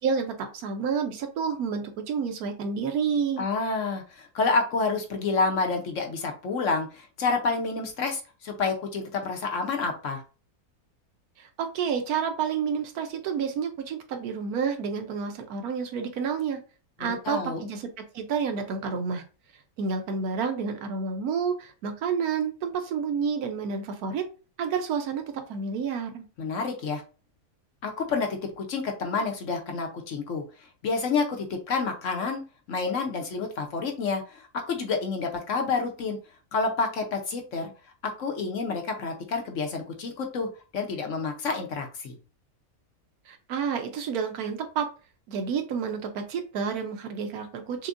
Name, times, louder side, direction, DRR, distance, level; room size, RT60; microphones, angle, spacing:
voice 1, 0.0-3.4 11.4-16.6 17.0-17.9 18.1-19.2 19.8-24.2 24.6-25.2 25.5-26.2 43.3-44.9 45.3-47.9, right 6 dB, 85° right, 6 dB, 1.2 m, -29 dB
voice 2, 3.4-10.2 17.0-17.6 26.4-27.0 27.8-28.3 28.6-30.4 30.8-32.4 32.7-36.2 36.5-37.7 38.2-40.5 40.7-42.1, left 4 dB, 60° left, 3 dB, 1.1 m, -29 dB
6.1 x 2.2 x 2.5 m, 0.34 s
omnidirectional pair, 1.6 m